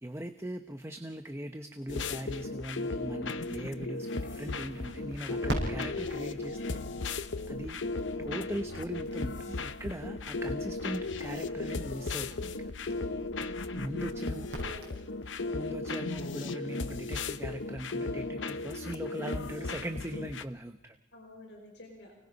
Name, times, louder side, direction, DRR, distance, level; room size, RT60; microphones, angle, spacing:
voice 1, 0.0-6.8 7.5-7.8 8.2-12.7 13.7-14.5 15.5-21.0, right 1 dB, 15° right, 7 dB, 0.9 m, -40 dB
sound 1, 1.9-20.4, left 3 dB, 80° left, 0.9 m, -36 dB
Crackle, 4.3-15.5, right 1 dB, 60° right, 6.5 m, -44 dB
voice 2, 14.1-14.9 21.1-22.1, left 1 dB, 60° left, 0 dB, 5.7 m, -50 dB
29.5 x 19.5 x 5.4 m, 0.90 s
head